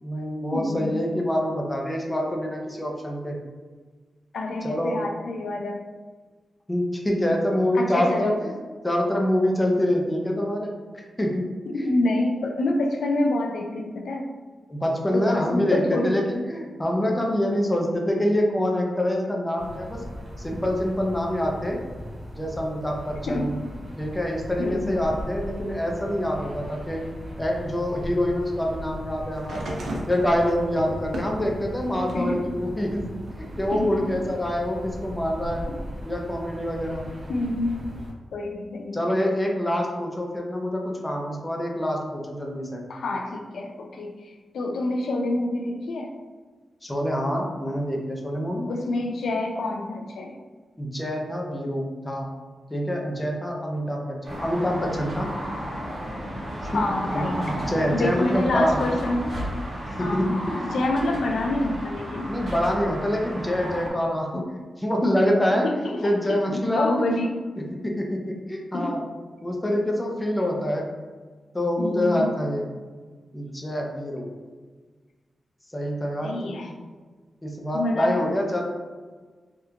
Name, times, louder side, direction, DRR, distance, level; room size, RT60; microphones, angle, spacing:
voice 1, 0.0-3.4 4.6-5.0 6.7-8.6 8.8-11.5 11.7-12.0 14.7-20.0 20.4-21.8 22.3-23.6 24.0-27.1 27.4-29.8 30.1-33.1 33.4-35.7 36.0-37.1 38.9-42.8 46.8-48.6 50.8-52.3 52.7-55.3 57.1-58.9 59.8-60.6 62.3-65.7 66.0-67.1 67.6-69.0 69.4-70.9 71.5-72.7 73.3-74.3 75.7-76.6 77.4-78.6, equal, 15° left, 0 dB, 0.4 m, -26 dB
voice 2, 0.5-1.0 4.3-5.8 7.7-8.4 11.7-14.2 15.1-16.2 23.3-23.5 24.6-24.9 32.1-32.4 33.7-34.0 37.3-37.7 38.3-39.0 42.9-44.1 44.5-46.1 48.7-50.4 56.7-57.4 57.9-59.4 60.0-60.4 60.7-62.3 65.6-67.3 68.7-69.0 71.8-72.3 76.2-76.7 77.7-78.3, left 2 dB, 90° left, 2 dB, 0.4 m, -27 dB
sound 1, 19.6-38.1, equal, 30° right, 0.9 m, -38 dB
sound 2, 29.3-32.4 32.9-34.0 35.0-35.1, right 1 dB, 85° right, 0.5 m, -37 dB
sound 3, 54.2-63.9, equal, 55° right, 1.3 m, -33 dB
3.5 x 2.3 x 2.8 m, 1.4 s
wide cardioid pair, 150°, 0 cm